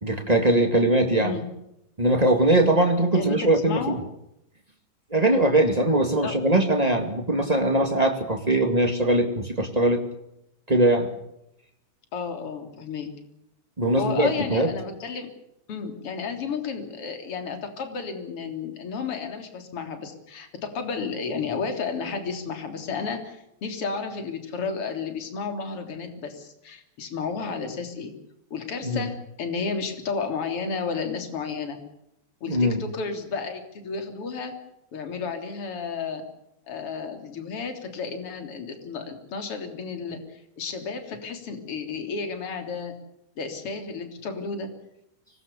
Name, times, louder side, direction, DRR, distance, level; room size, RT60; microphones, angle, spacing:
voice 1, 0.0-1.3 2.0-4.0 5.1-10.0 10.7-11.1 13.8-14.7 28.8-29.0 32.5-32.8, right 1 dB, 40° right, 4 dB, 0.5 m, -21 dB
voice 2, 3.1-4.0 6.2-6.4 12.1-13.1 14.0-15.3 15.7-28.1 28.5-31.8 32.4-34.6 34.9-36.2 36.7-43.0 43.4-44.7, left 5 dB, 35° left, 6 dB, 3.8 m, -32 dB
25.5 x 21.0 x 7.0 m, 0.81 s
omnidirectional pair, 5.1 m